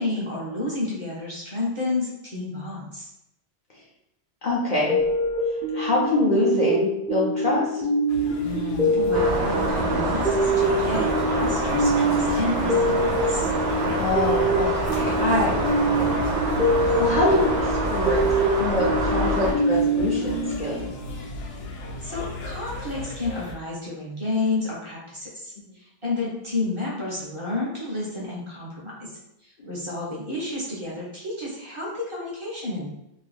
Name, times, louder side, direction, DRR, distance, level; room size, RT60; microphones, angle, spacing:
voice 1, 0.0-3.1 8.4-13.5 22.0-32.9, left 2 dB, 30° right, -5 dB, 0.7 m, -31 dB
voice 2, 4.4-5.0 5.7-7.6 14.0-16.1 17.0-18.2 18.6-20.9 29.6-29.7, left 2 dB, 50° left, -5 dB, 0.6 m, -25 dB
sound 1, 4.9-21.2, equal, 5° right, 0.5 m, -25 dB
sound 2, 8.1-23.6, left 2 dB, 80° left, 0.9 m, -37 dB
sound 3, 9.1-19.5, right 2 dB, 70° right, 0.9 m, -26 dB
2.6 x 2.2 x 3.4 m, 0.85 s
omnidirectional pair, 1.2 m